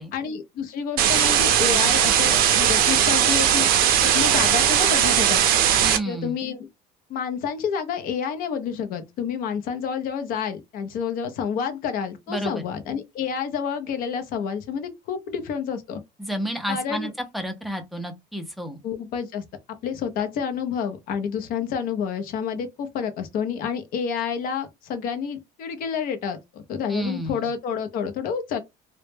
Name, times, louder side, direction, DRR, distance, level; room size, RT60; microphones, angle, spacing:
voice 1, 0.1-3.7 4.0-5.4 6.1-6.7 7.1-16.0 16.7-17.1 18.8-19.4 19.8-28.6, left 7 dB, 50° left, 0.5 m, -29 dB
sound 1, 1.0-6.0, right 9 dB, 55° right, 0.5 m, -19 dB
voice 2, 5.8-6.4 12.3-12.6 16.2-18.8 26.9-27.5, equal, ahead, 0.4 m, -30 dB
2.1 x 2.0 x 3.1 m
cardioid pair, 150°, 18 cm